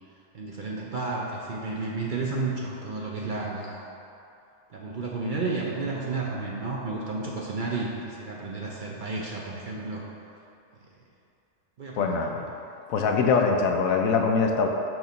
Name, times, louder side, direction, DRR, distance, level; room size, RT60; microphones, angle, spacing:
voice 1, 0.3-3.9 4.7-10.1 11.8-12.2, right 3 dB, 50° right, -3 dB, 0.6 m, -32 dB
voice 2, 12.0-12.4 12.9-14.7, left 5 dB, 90° left, 3 dB, 1.1 m, -23 dB
6.2 x 3.6 x 5.0 m, 2.7 s
omnidirectional pair, 1.4 m